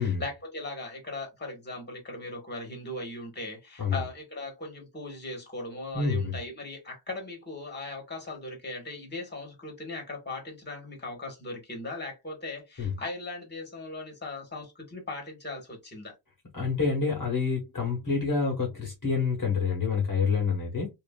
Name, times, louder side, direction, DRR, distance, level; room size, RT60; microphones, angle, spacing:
voice 1, 0.0-16.1, left 2 dB, 20° left, 1.4 m, -38 dB
voice 2, 5.9-6.4 12.8-12.9 16.5-20.9, left 5 dB, 40° left, 1.2 m, -27 dB
2.8 x 2.6 x 2.2 m
wide cardioid pair, 100°, 49 cm